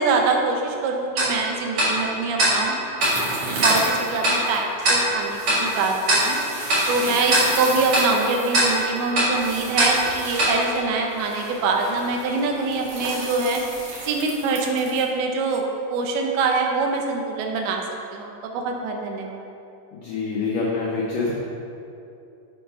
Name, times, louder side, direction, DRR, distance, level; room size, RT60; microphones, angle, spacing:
voice 1, 0.0-2.8 3.6-6.4 6.9-13.6 14.0-17.8 18.1-19.5, right 3 dB, 75° right, 2 dB, 2.5 m, -24 dB
Tick-tock, 1.2-11.6, right 1 dB, 45° right, 2.1 m, -24 dB
sound 1, 3.0-15.0, right 2 dB, 60° right, 1.7 m, -34 dB
voice 2, 19.9-21.3, left 4 dB, 85° left, -5 dB, 1.8 m, -26 dB
8.3 x 4.4 x 5.5 m, 2.7 s
omnidirectional pair, 4.9 m